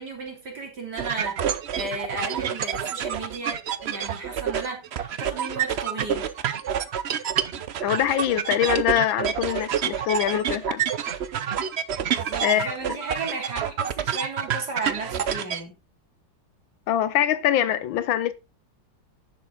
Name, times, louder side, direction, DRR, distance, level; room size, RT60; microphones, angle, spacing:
voice 1, 0.0-6.3 12.0-15.8, right 3 dB, 55° right, 3.8 m, -35 dB
sound 1, 1.0-15.6, right 8 dB, 85° right, 0.5 m, -28 dB
voice 2, 7.8-10.8 12.4-12.8 16.9-18.3, left 11 dB, 85° left, 1.6 m, -23 dB
10.5 x 7.0 x 3.8 m
omnidirectional pair, 2.1 m